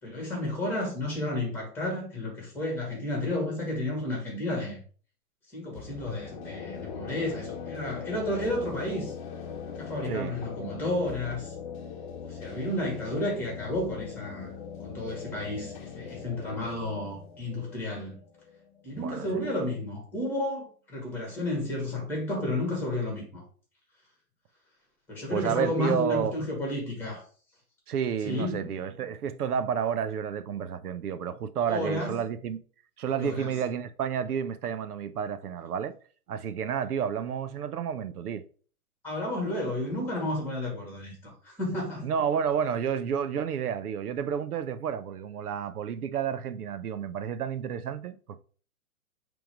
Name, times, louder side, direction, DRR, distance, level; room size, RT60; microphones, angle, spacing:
voice 1, 0.0-4.8 5.5-9.1 9.8-11.5 12.2-14.5 14.8-18.2 18.8-23.4 25.1-27.3 28.2-28.7 31.7-32.2 33.1-33.6 39.0-42.1, left 1 dB, 5° left, 2.5 m, -32 dB
sound 1, 5.7-19.4, left 6 dB, 35° left, 1.1 m, -41 dB
voice 2, 10.0-10.4 18.9-19.3 25.3-26.4 27.9-32.6 33.0-35.9 36.3-38.4 42.0-48.4, right 8 dB, 85° right, 0.7 m, -30 dB
6.0 x 3.6 x 5.0 m
hypercardioid pair, 155°, 44 cm